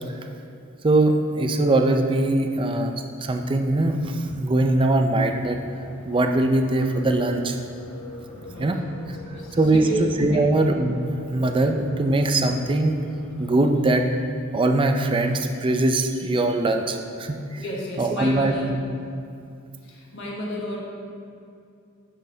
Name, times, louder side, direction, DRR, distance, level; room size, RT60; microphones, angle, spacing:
voice 1, 0.8-5.6 6.1-7.6 8.6-8.8 9.5-9.9 10.2-11.0 11.3-13.0 13.4-14.1 14.5-17.6 18.0-18.8, right 2 dB, 25° right, 5 dB, 0.4 m, -21 dB
sound 1, 5.1-14.1, left 1 dB, 35° left, 1.8 m, -44 dB
voice 2, 8.5-8.8 9.2-10.0 10.3-10.5 17.6-18.8 19.8-20.8, right 1 dB, 60° left, -3 dB, 1.3 m, -32 dB
9.8 x 6.4 x 2.7 m, 2.5 s
head